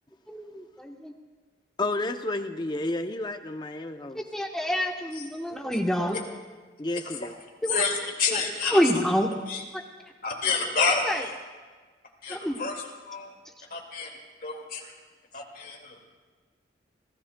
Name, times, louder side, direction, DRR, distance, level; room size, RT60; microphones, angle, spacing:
voice 1, 0.3-1.1 4.1-6.2 7.6-7.8 8.3-9.3 10.8-11.2 12.3-12.6, equal, 5° left, 2 dB, 0.9 m, -27 dB
voice 2, 1.8-4.2 6.8-7.4, left 2 dB, 25° left, 7 dB, 0.5 m, -31 dB
voice 3, 7.7-9.0 9.5-9.6 10.2-11.3 12.2-13.3 13.7-14.1 14.4-14.9 15.3-16.0, left 4 dB, 50° left, 0 dB, 2.1 m, -29 dB
30.0 x 13.5 x 2.2 m, 1.4 s
head